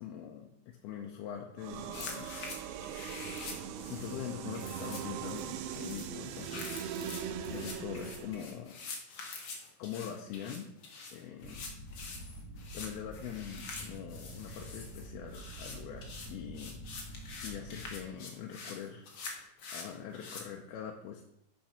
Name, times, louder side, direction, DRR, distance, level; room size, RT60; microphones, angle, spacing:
voice 1, 0.0-2.4 3.9-6.9 7.5-8.8 9.8-10.7 11.1-11.7 12.7-16.8 17.4-19.1 19.7-21.3, left 9 dB, 80° left, 1 dB, 2.6 m, -43 dB
sound 1, 1.6-8.5, right 9 dB, 85° right, 2.5 m, -40 dB
sound 2, 1.9-20.4, left 4 dB, 65° left, 1.3 m, -46 dB
sound 3, 11.4-18.0, right 1 dB, 55° right, 2.3 m, -47 dB
8.8 x 6.4 x 5.8 m, 0.83 s
omnidirectional pair, 4.6 m